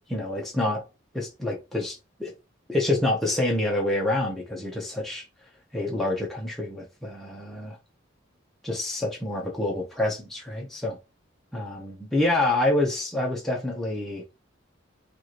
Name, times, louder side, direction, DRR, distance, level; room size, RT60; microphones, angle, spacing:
voice 1, 0.1-0.8 1.1-2.3 2.7-5.2 5.7-7.8 8.6-11.0 11.5-14.2, left 2 dB, ahead, 0.8 m, -27 dB
4.6 x 2.5 x 3.0 m
head